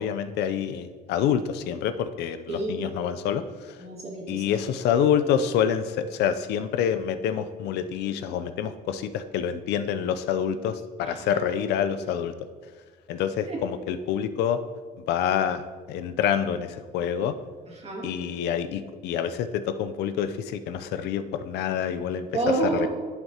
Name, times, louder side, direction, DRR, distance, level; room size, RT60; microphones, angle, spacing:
voice 1, 0.0-3.8 4.3-12.3 13.1-14.6 15.1-17.3 18.0-22.3 22.7-22.9, left 8 dB, 80° left, 10 dB, 0.5 m, -27 dB
voice 2, 2.5-2.8 3.8-4.4 11.0-11.4 13.5-13.6 17.7-18.1 22.3-22.9, right 2 dB, 40° right, -3 dB, 2.3 m, -29 dB
11.0 x 5.9 x 2.8 m, 1.5 s
cardioid pair, 110°, 17 cm